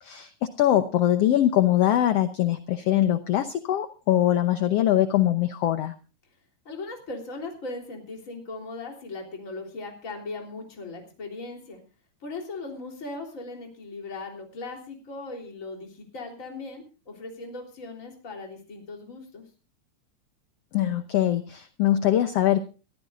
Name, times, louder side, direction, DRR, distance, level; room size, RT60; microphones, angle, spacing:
voice 1, 0.0-5.9 20.7-22.6, left 12 dB, 70° left, 9 dB, 1.6 m, -22 dB
voice 2, 6.7-11.8 12.2-19.4, left 3 dB, 25° left, 1 dB, 3.6 m, -38 dB
23.0 x 14.0 x 2.5 m, 0.33 s
omnidirectional pair, 3.7 m